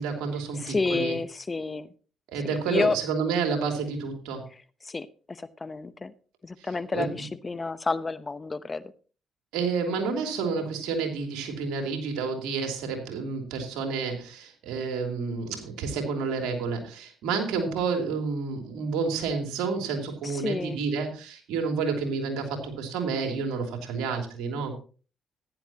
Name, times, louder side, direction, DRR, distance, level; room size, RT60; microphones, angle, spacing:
voice 1, 0.0-1.1 2.3-4.4 6.9-7.1 9.5-24.7, right 5 dB, 80° right, 4 dB, 3.0 m, -29 dB
voice 2, 0.6-1.9 2.4-3.0 4.5-6.1 6.4-8.8 20.2-20.8, left 3 dB, 30° left, 14 dB, 0.8 m, -30 dB
14.5 x 10.5 x 2.9 m, 0.38 s
supercardioid pair, 55°, 0 cm